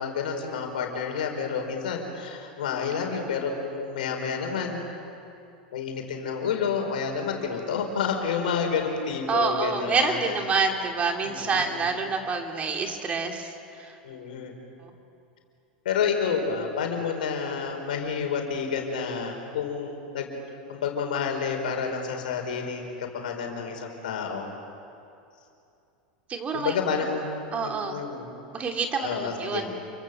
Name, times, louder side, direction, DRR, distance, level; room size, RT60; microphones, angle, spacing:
voice 1, 0.0-4.8 5.7-10.4 11.2-11.8 14.0-14.5 15.8-20.3 20.7-24.5 26.5-27.3 27.6-28.3 29.0-29.7, left 6 dB, 75° left, 3 dB, 4.7 m, -29 dB
voice 2, 9.3-13.5 13.8-13.9 26.3-26.7 27.5-28.0 28.5-29.7, right 5 dB, 30° right, 3 dB, 3.2 m, -27 dB
29.0 x 24.0 x 7.7 m, 2.6 s
hypercardioid pair, 95°, 5 cm